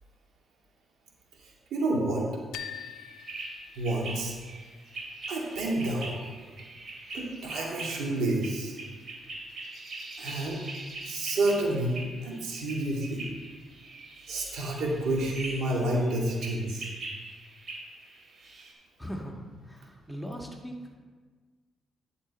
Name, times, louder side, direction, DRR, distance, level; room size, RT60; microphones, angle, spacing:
voice 1, 1.4-2.2 3.8-4.3 5.3-6.2 7.1-8.8 10.2-10.6 11.0-13.2 14.3-16.9, right 1 dB, 75° right, -2 dB, 2.3 m, -29 dB
sound 1, 2.5-4.5, left 10 dB, 90° left, 0.6 m, -43 dB
sound 2, 2.5-18.7, right 2 dB, 55° right, 2.8 m, -43 dB
voice 2, 19.0-20.8, equal, 5° left, 0 dB, 1.6 m, -39 dB
11.0 x 6.9 x 4.3 m, 1.5 s
cardioid pair, 70°, 0 cm